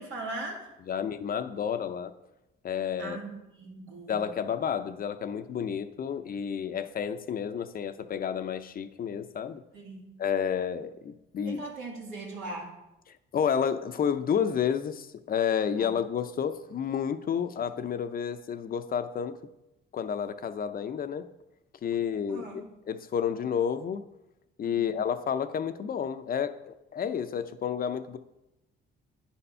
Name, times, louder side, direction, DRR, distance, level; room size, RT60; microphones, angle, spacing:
voice 1, 0.0-0.7 3.0-4.2 9.7-10.2 11.4-12.8 15.7-15.9 22.3-22.7 24.7-25.0, right 2 dB, 85° right, -1 dB, 2.2 m, -40 dB
voice 2, 0.9-2.1 2.6-3.2 4.1-9.6 10.2-11.6 13.3-19.4 19.9-21.3 21.8-24.0 24.6-28.2, left 8 dB, 45° left, 10 dB, 0.6 m, -30 dB
9.7 x 4.3 x 5.5 m, 0.93 s
cardioid pair, 90°, 20 cm